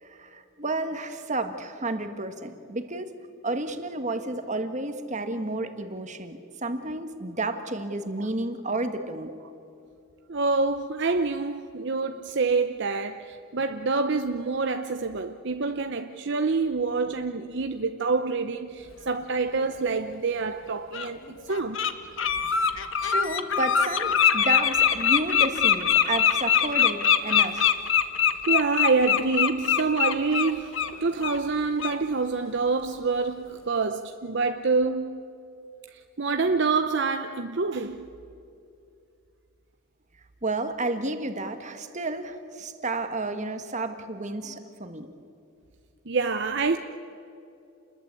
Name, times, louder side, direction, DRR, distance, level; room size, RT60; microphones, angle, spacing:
voice 1, 0.0-3.1 3.4-9.3 22.6-27.7 40.4-45.1, right 2 dB, 35° right, 1.7 m, -31 dB
voice 2, 10.3-21.8 28.5-35.2 35.9-38.1 46.1-46.8, right 4 dB, 55° right, 0.8 m, -27 dB
Bird, 20.1-20.2 20.9-21.1 21.5-21.9 22.2-30.9 31.2-31.4 31.8-32.0, left 8 dB, 65° left, 1.3 m, -22 dB
29.0 x 21.0 x 8.3 m
head